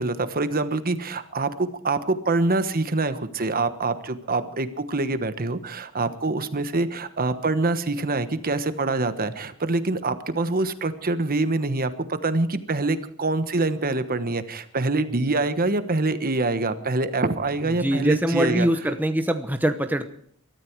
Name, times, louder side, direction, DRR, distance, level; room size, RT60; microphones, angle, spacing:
voice 1, 0.0-18.7, right 2 dB, 40° right, 11 dB, 1.2 m, -25 dB
voice 2, 17.7-20.1, right 1 dB, 10° right, 7 dB, 0.8 m, -23 dB
23.0 x 13.5 x 4.6 m, 0.63 s
head